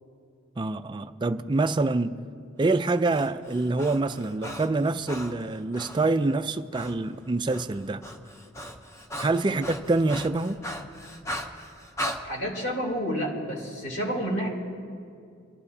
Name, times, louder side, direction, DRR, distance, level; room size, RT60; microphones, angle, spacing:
voice 1, 0.6-2.2 2.6-8.0 9.2-10.6, right 3 dB, 20° right, 10 dB, 0.3 m, -26 dB
Breathing, 2.9-6.1 6.7-7.0 7.3-12.2, equal, 15° left, 0.7 m, -38 dB
voice 2, 12.2-14.5, equal, 60° left, -2 dB, 3.1 m, -30 dB
25.5 x 12.0 x 2.8 m, 2.3 s
head